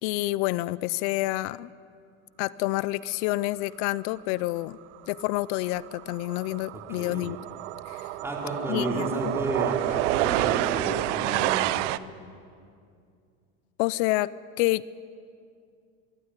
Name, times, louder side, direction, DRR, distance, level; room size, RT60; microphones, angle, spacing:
voice 1, 0.0-1.7 2.4-4.8 5.1-7.4 7.9-8.1 8.7-9.3 13.8-14.8, left 18 dB, 70° left, 20 dB, 0.6 m, -28 dB
sound 1, 5.2-5.4 5.7-12.0, right 17 dB, 90° right, 0.7 m, -28 dB
voice 2, 6.7-7.3 8.2-11.7, right 1 dB, 5° right, 0 dB, 3.5 m, -32 dB
24.0 x 13.5 x 9.9 m, 2.3 s
supercardioid pair, 135°, 36 cm